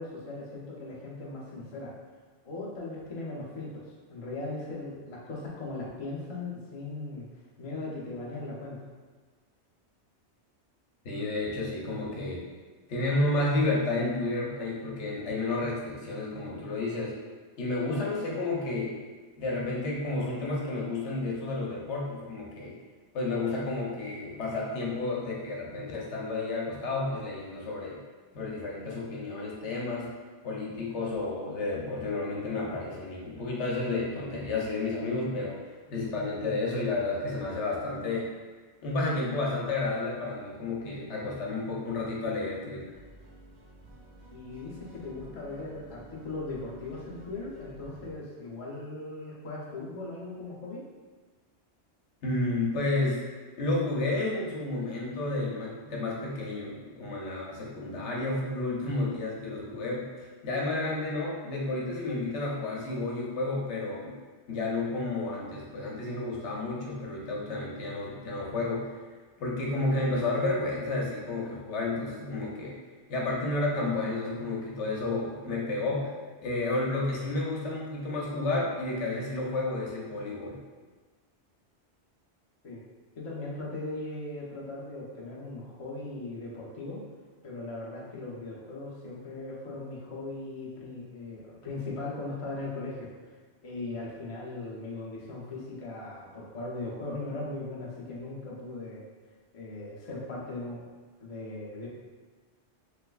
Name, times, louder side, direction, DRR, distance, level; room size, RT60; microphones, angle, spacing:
voice 1, 0.0-1.9 2.4-3.8 4.1-7.3 7.6-8.8 44.3-50.8 82.6-82.8 83.1-87.0 87.4-93.1 93.6-99.0 99.5-100.9 101.2-101.9, left 2 dB, 40° left, -5 dB, 0.6 m, -38 dB
voice 2, 11.0-12.4 12.9-17.2 17.6-19.0 19.4-22.7 23.1-28.0 28.3-30.1 30.4-38.3 38.8-42.9 52.2-53.2 53.6-64.1 64.5-68.9 69.4-72.7 73.1-76.1 76.4-80.6, left 2 dB, 80° left, -3 dB, 1.0 m, -31 dB
sound 1, 42.9-48.1, right 1 dB, 50° right, 0.7 m, -51 dB
3.2 x 3.0 x 2.3 m, 1.4 s
omnidirectional pair, 1.2 m